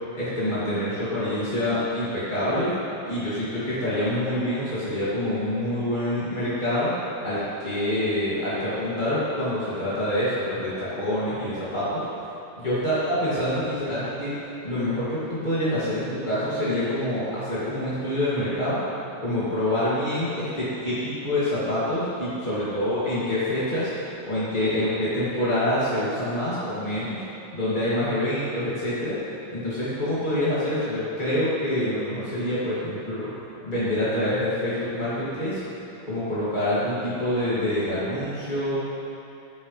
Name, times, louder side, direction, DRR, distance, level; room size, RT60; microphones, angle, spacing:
voice 1, 0.1-2.8 3.1-6.9 7.2-12.0 12.6-14.3 14.6-18.8 19.2-27.2 27.5-29.2 29.5-33.3 33.6-35.6 36.1-38.9, left 1 dB, 30° left, -12 dB, 0.9 m, -26 dB
13.0 x 11.0 x 3.3 m, 2.8 s
omnidirectional pair, 5.1 m